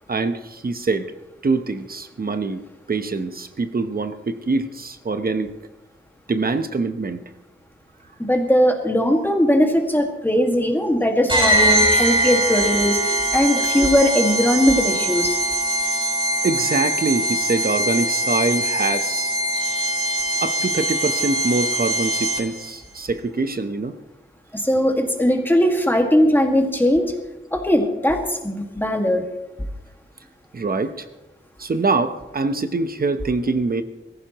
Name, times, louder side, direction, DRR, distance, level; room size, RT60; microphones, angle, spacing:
voice 1, 0.1-1.1 1.4-2.6 2.9-5.5 6.3-7.2 16.4-19.4 20.4-24.0 25.2-25.3 30.5-31.1 31.6-33.8, right 3 dB, 45° right, 9 dB, 0.9 m, -24 dB
voice 2, 8.2-15.4 24.5-27.2 27.5-29.2, equal, 10° left, 2 dB, 1.9 m, -19 dB
sound 1, 11.3-22.7, right 1 dB, 25° right, 4.8 m, -22 dB
22.0 x 15.0 x 3.1 m, 1.0 s
wide cardioid pair, 115°, 20 cm